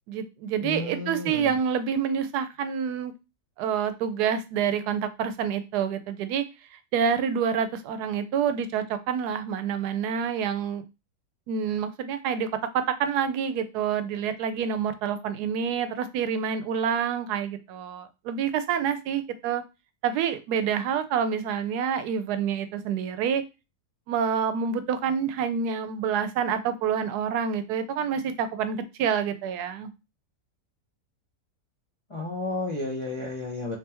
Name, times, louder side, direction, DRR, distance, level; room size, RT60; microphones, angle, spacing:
voice 1, 0.1-3.1 3.6-6.4 6.7-10.8 11.5-12.5 12.7-19.6 20.0-23.4 24.1-29.9, right 7 dB, 85° right, 10 dB, 1.1 m, -27 dB
voice 2, 0.6-1.5 32.1-33.8, left 2 dB, 50° left, -2 dB, 0.3 m, -32 dB
3.2 x 2.9 x 3.3 m, 0.27 s
omnidirectional pair, 1.6 m